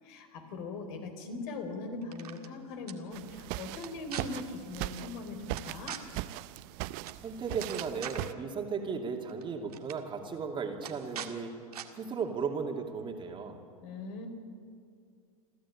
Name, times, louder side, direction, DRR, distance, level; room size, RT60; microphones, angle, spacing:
voice 1, 0.0-6.0 13.8-14.3, left 3 dB, 55° left, 6 dB, 4.3 m, -40 dB
sound 1, 2.0-2.5 2.9-3.0 3.8-4.2 5.6-6.0 7.1-7.2 7.5-8.3 9.3-9.4 9.7-10.0 10.8-11.3 11.7-11.9, right 9 dB, 80° right, 1.9 m, -41 dB
sound 2, 3.1-8.3, right 18 dB, 50° right, 0.6 m, -39 dB
voice 2, 7.2-11.5 11.9-13.6, right 5 dB, 25° right, 3 dB, 2.7 m, -35 dB
28.5 x 13.0 x 8.7 m, 2.3 s
hypercardioid pair, 105°, 19 cm